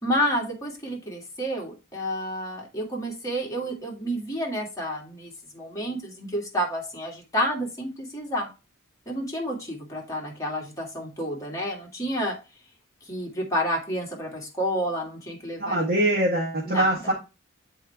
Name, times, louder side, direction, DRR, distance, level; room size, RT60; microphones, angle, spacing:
voice 1, 0.0-8.5 9.1-12.4 13.0-15.9 16.6-17.1, equal, 15° left, -2 dB, 2.1 m, -30 dB
voice 2, 15.6-17.1, right 1 dB, 50° right, -3 dB, 1.4 m, -23 dB
7.6 x 4.4 x 3.4 m, 0.28 s
head